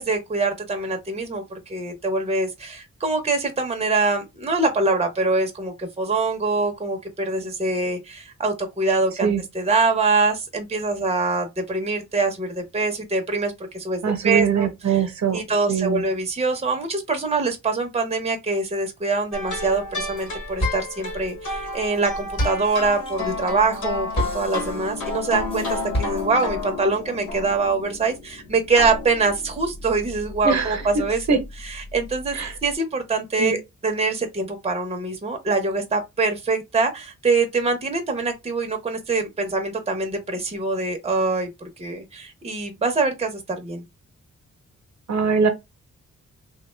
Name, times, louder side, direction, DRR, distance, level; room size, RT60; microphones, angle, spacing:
voice 1, 0.0-14.7 15.3-31.4 31.7-32.4 32.6-43.8, right 3 dB, 20° right, 0.7 m, -24 dB
voice 2, 14.0-15.4 15.7-16.0 30.4-30.8 31.3-31.4 32.3-32.5 33.4-33.6 45.1-45.5, right 6 dB, 70° right, 0.8 m, -22 dB
sound 1, 19.3-32.7, left 3 dB, 85° left, 1.2 m, -32 dB
sound 2, 19.7-20.3 20.6-26.6, equal, 20° left, 1.0 m, -31 dB
3.4 x 2.2 x 3.2 m
wide cardioid pair, 150°, 29 cm